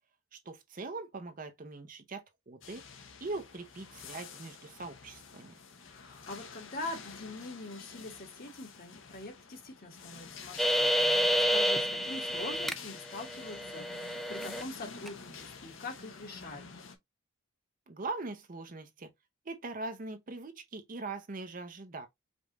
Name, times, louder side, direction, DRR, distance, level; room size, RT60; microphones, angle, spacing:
voice 1, 0.3-2.8 3.2-5.5 17.9-19.1 19.5-22.1, right 3 dB, 40° right, 0.6 m, -41 dB
sound 1, 2.6-17.0, left 5 dB, 65° left, 0.8 m, -49 dB
voice 2, 5.8-16.7, left 2 dB, 45° left, 1.6 m, -44 dB
sound 2, 10.6-12.7 13.1-14.6 15.1-15.2, equal, ahead, 0.3 m, -29 dB
5.2 x 2.5 x 3.0 m
head